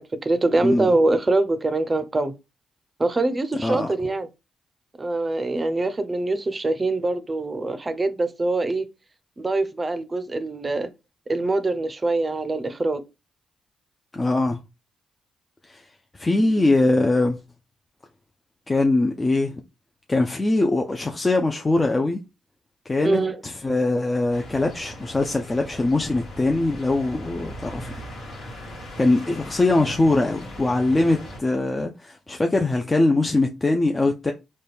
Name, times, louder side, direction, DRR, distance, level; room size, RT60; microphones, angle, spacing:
voice 1, 0.2-2.3 3.0-4.3 5.0-8.8 9.4-10.9 11.3-13.0 23.0-23.4, right 2 dB, 30° right, 0.5 m, -23 dB
voice 2, 14.1-14.6 15.7-15.8 16.1-17.4 18.7-19.5 20.1-22.2 22.9-27.9 29.0-34.3, left 2 dB, 25° left, 0.4 m, -22 dB
sound 1, 24.3-31.4, equal, 80° left, 1.4 m, -39 dB
4.1 x 2.2 x 3.3 m
supercardioid pair, 65°, 0 cm